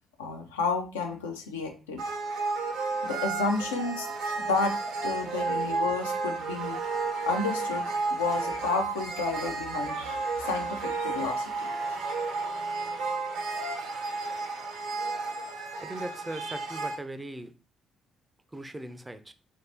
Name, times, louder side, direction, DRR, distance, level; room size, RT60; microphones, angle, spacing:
voice 1, 0.2-2.0 3.0-4.1 4.4-4.8 5.0-6.8 7.2-12.0, left 4 dB, 80° left, 0.4 m, -31 dB
sound 1, 2.0-17.0, right 3 dB, 70° right, 0.6 m, -32 dB
voice 2, 15.8-17.5 18.5-19.3, right 1 dB, 15° right, 0.4 m, -39 dB
3.1 x 2.5 x 2.8 m
figure-of-eight pair, 45°, 0 cm